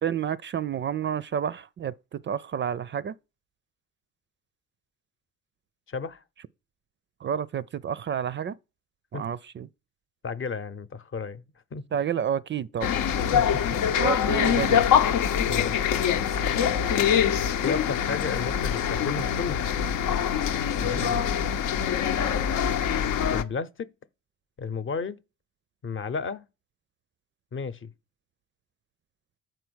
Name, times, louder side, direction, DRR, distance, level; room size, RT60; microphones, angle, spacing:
voice 1, 0.0-3.1 7.2-8.6 9.1-9.7 11.9-12.9 13.9-14.8 21.0-21.3, right 8 dB, 40° right, 0.4 m, -30 dB
voice 2, 5.9-6.2 9.1-9.2 10.2-11.4 11.7-11.8 13.3-13.5 15.5-15.7 17.6-19.7 20.8-21.1 23.3-23.9 24.6-25.2 25.8-26.4 27.5-27.9, left 5 dB, 40° left, 0.8 m, -33 dB
sound 1, 12.8-23.4, left 8 dB, 85° left, 0.8 m, -24 dB
7.8 x 4.6 x 6.2 m
cardioid pair, 90°, 30 cm